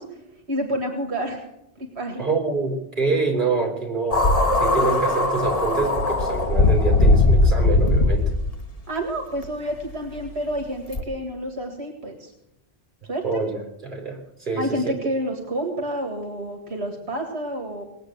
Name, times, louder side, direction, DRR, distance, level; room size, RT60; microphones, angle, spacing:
voice 1, 0.0-1.4 1.8-2.2 8.9-12.3 13.0-13.4 14.6-17.8, equal, 85° right, 3 dB, 2.2 m, -29 dB
voice 2, 2.2-4.3 4.6-8.3 13.2-15.0, right 4 dB, 50° right, 0 dB, 3.9 m, -26 dB
sound 1, 4.1-8.6 9.4-9.5 10.9-11.0, left 2 dB, 35° left, 1.5 m, -19 dB
19.5 x 8.2 x 7.9 m, 0.85 s
omnidirectional pair, 1.1 m